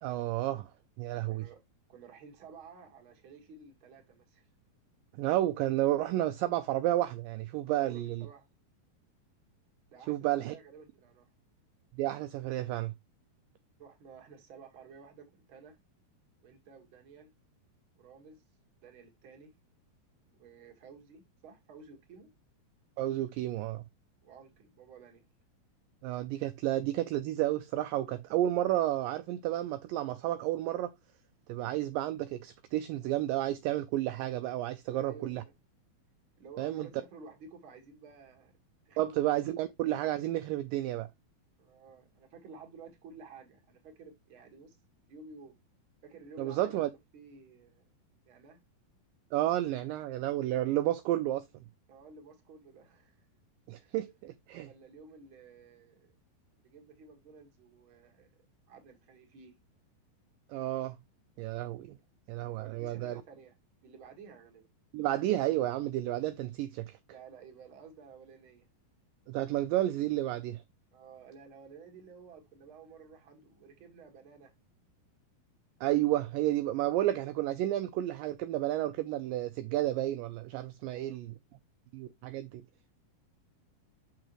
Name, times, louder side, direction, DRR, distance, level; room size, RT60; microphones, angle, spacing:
voice 1, 0.0-0.7 1.0-1.5 5.2-8.3 10.1-10.6 12.0-12.9 23.0-23.8 26.0-30.9 31.5-35.4 36.6-36.9 39.0-41.1 46.4-46.9 49.3-51.4 53.7-54.7 60.5-61.0 61.4-62.0 62.3-63.2 64.9-67.0 69.3-70.6 75.8-81.3 81.9-82.6, right 14 dB, 85° right, 2.0 m, -31 dB
voice 2, 1.2-1.6 1.9-4.5 7.6-8.5 9.9-10.1 10.4-11.3 13.8-15.8 16.4-17.3 18.0-18.4 18.8-19.5 20.3-22.3 24.2-25.2 34.9-35.5 36.4-38.6 38.9-39.5 41.6-44.8 45.1-45.6 46.0-46.8 47.1-47.9 48.2-48.6 51.9-53.3 53.7-54.0 54.7-56.1 56.6-58.3 58.7-59.6 62.4-63.6 63.8-64.7 67.1-68.7 70.9-74.5 80.8-81.2, right 5 dB, 45° right, 2.0 m, -53 dB
6.4 x 6.0 x 3.0 m
omnidirectional pair, 4.4 m